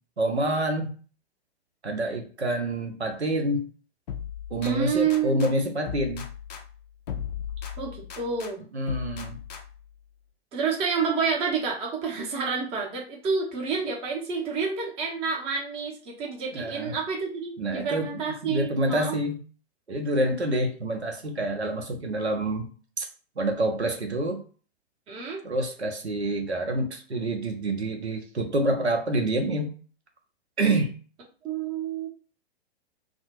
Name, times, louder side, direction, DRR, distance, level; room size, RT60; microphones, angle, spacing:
voice 1, 0.2-0.9 1.8-3.7 4.5-6.3 8.7-9.4 16.5-17.0 17.6-19.4 19.9-22.7 23.0-23.1 23.4-24.4 25.4-29.7 30.6-30.9, right 1 dB, 90° right, 3 dB, 0.6 m, -27 dB
sound 1, 4.1-5.5 5.9-8.5 8.9-9.9, left 8 dB, 40° left, 0.4 m, -37 dB
voice 2, 4.6-5.5 7.8-8.7 10.5-19.2 25.1-25.4 31.4-32.1, right 5 dB, 20° right, -1 dB, 0.6 m, -29 dB
2.4 x 2.0 x 2.9 m, 0.40 s
figure-of-eight pair, 105°, 32 cm